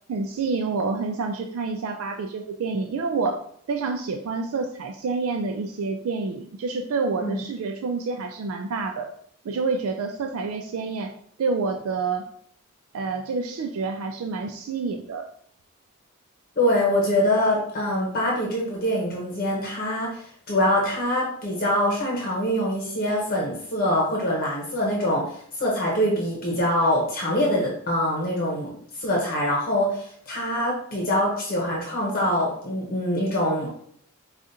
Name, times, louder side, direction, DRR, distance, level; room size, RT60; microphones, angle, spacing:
voice 1, 0.1-3.4 3.7-9.1 9.4-12.3 12.9-15.3, right 4 dB, 80° right, 4 dB, 0.4 m, -28 dB
voice 2, 16.6-33.7, left 1 dB, 45° left, -3 dB, 0.9 m, -24 dB
4.8 x 2.4 x 2.7 m, 0.64 s
head